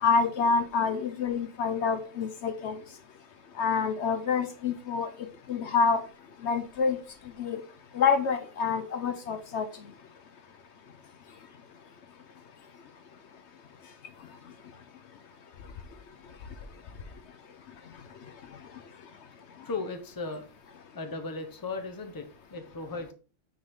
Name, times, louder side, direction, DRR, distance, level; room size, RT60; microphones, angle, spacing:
voice 1, 0.0-2.8 3.6-6.0 6.4-7.0 7.4-7.6 7.9-9.7, left 5 dB, 65° left, 9 dB, 0.9 m, -27 dB
voice 2, 19.6-20.5 20.9-23.1, left 3 dB, 20° left, 6 dB, 0.8 m, -37 dB
6.3 x 3.7 x 4.7 m, 0.36 s
omnidirectional pair, 1.3 m